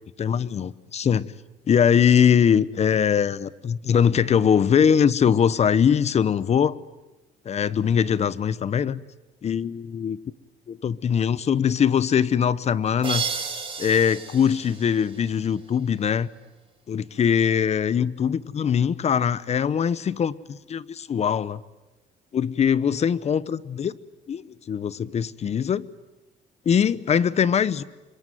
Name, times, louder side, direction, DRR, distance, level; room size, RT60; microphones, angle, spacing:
voice 1, 0.2-1.3 1.7-6.8 7.4-9.0 9.4-10.2 10.7-13.2 13.8-16.3 16.9-21.6 22.3-23.9 24.3-24.4 24.7-25.9 26.7-27.8, left 7 dB, 40° left, 0.9 m, -22 dB
sound 1, 13.0-15.8, right 5 dB, 30° right, 5.1 m, -33 dB
26.5 x 23.0 x 9.4 m
cardioid pair, 110°, 17 cm